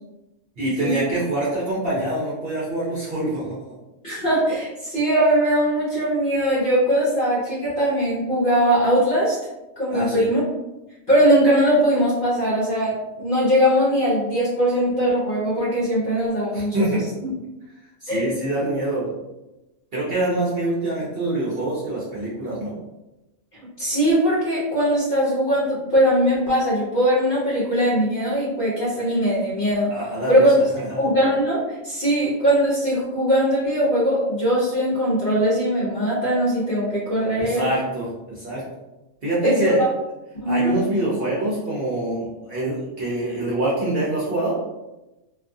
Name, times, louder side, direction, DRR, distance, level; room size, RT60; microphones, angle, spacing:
voice 1, 0.6-3.6 9.9-10.3 16.5-17.1 18.0-19.1 19.9-22.7 29.9-31.0 37.4-38.6 39.2-39.8 40.5-44.6, right 1 dB, 50° right, -7 dB, 0.8 m, -25 dB
voice 2, 4.0-9.4 9.8-10.4 11.1-17.3 18.1-18.3 23.8-29.9 30.3-30.6 31.0-37.7 39.4-39.9 40.4-40.8, equal, 45° left, -7 dB, 0.9 m, -20 dB
2.6 x 2.4 x 2.6 m, 0.99 s
omnidirectional pair, 1.5 m